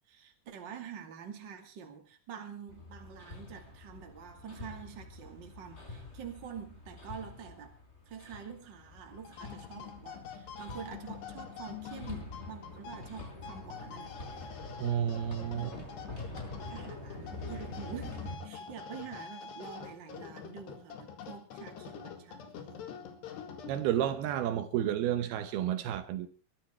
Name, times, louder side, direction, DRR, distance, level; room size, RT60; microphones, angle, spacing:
voice 1, 0.1-7.7 8.1-14.5 15.5-15.9 16.7-22.9, right 7 dB, 35° right, 2.4 m, -47 dB
Hammer, 2.7-18.3, left 2 dB, 15° left, 4.5 m, -46 dB
sound 1, 9.1-24.1, left 7 dB, 85° left, 4.2 m, -46 dB
voice 2, 14.8-15.7 23.7-26.3, right 11 dB, 75° right, 2.9 m, -31 dB
22.0 x 12.5 x 4.5 m
omnidirectional pair, 4.7 m